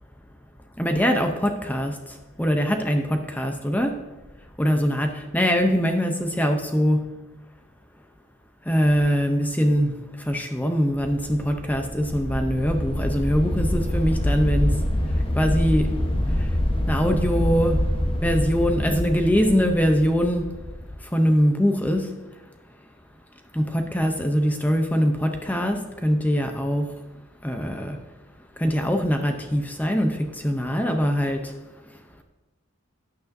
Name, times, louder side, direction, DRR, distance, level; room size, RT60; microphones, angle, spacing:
voice 1, 0.8-2.0 2.4-4.0 4.6-7.0 8.7-10.0 10.2-14.8 15.4-16.0 16.9-17.8 18.2-20.5 21.1-22.2 23.5-26.9 27.4-28.0 28.6-31.5, equal, 10° left, 5 dB, 0.6 m, -22 dB
sound 1, 11.0-20.9, left 1 dB, 25° left, 1.0 m, -26 dB
13.0 x 9.4 x 2.6 m, 1.1 s
head